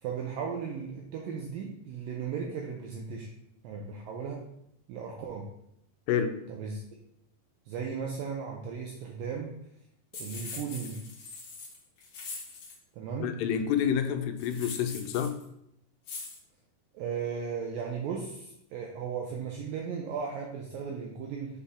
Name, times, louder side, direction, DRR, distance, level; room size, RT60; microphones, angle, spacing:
voice 1, 0.0-3.3 3.6-4.4 4.9-5.5 6.5-6.8 7.7-9.5 10.2-11.0 12.9-13.3 16.9-21.6, right 6 dB, 90° right, 0 dB, 2.0 m, -36 dB
voice 2, 6.1-6.4 13.2-15.4, left 8 dB, 85° left, 8 dB, 2.6 m, -28 dB
sound 1, 10.1-12.8 14.4-15.4 16.0-16.4, left 4 dB, 60° left, 2.2 m, -42 dB
7.1 x 4.1 x 3.6 m, 0.78 s
omnidirectional pair, 4.8 m